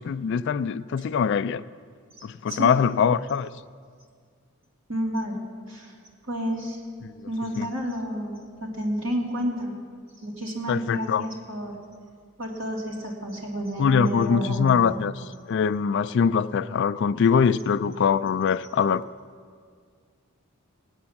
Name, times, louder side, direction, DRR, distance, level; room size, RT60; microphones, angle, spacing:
voice 1, 0.0-1.6 2.2-3.5 7.0-7.3 7.6-7.7 10.7-11.2 13.8-15.1 15.5-19.0, left 6 dB, 55° left, 0.3 m, -23 dB
voice 2, 2.5-2.8 4.9-5.4 5.7-5.9 6.2-6.8 7.3-9.7 10.2-11.8 12.4-15.0, equal, 60° right, 2.5 m, -30 dB
18.0 x 8.8 x 7.1 m
head